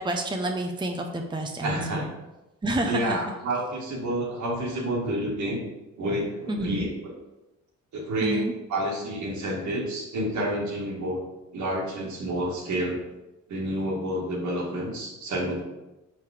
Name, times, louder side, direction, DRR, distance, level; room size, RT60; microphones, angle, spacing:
voice 1, 0.0-2.1 2.6-3.2 6.5-6.9 8.2-8.5, right 1 dB, 15° right, 2 dB, 0.8 m, -29 dB
voice 2, 1.6-2.1 2.8-5.6 6.0-7.1 7.9-8.4 8.7-11.2 11.5-13.0 13.5-15.6, right 1 dB, 70° right, -2 dB, 2.0 m, -29 dB
5.2 x 4.8 x 5.0 m, 1.0 s
cardioid pair, 90°, 30 cm